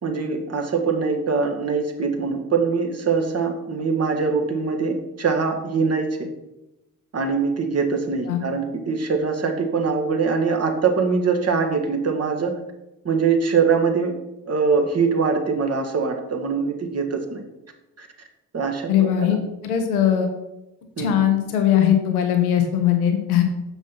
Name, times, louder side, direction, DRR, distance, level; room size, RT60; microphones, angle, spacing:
voice 1, 0.0-6.3 7.1-12.6 13.0-14.2 14.5-17.4 18.0-18.1 18.5-19.4 21.0-21.3, right 5 dB, 35° right, 4 dB, 1.7 m, -23 dB
voice 2, 18.9-19.4 19.6-20.3 21.0-23.4, left 10 dB, 75° left, 5 dB, 1.2 m, -19 dB
7.2 x 6.1 x 5.6 m, 0.95 s
figure-of-eight pair, 45°, 44 cm